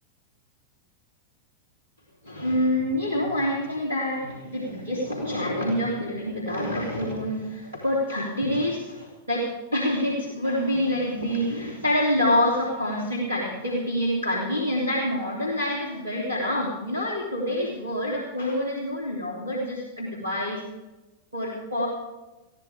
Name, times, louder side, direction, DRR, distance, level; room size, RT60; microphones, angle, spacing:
voice 1, 2.2-20.6 21.3-21.9, left 1 dB, 80° right, -3 dB, 3.3 m, -27 dB
20.5 x 15.0 x 3.6 m, 1.1 s
figure-of-eight pair, 90°, 0 cm